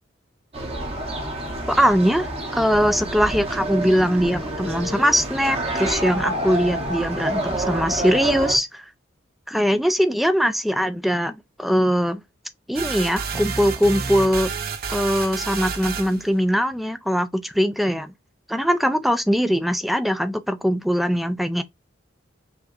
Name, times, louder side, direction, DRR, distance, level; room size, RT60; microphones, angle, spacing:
sound 1, 0.5-8.6, right 1 dB, 30° right, 1.1 m, -28 dB
voice 1, 1.7-8.8 9.5-12.2 12.7-14.5 14.9-18.1 18.5-21.6, equal, ahead, 0.4 m, -21 dB
sound 2, 12.7-16.2, right 5 dB, 50° right, 0.9 m, -29 dB
5.8 x 3.0 x 2.5 m
head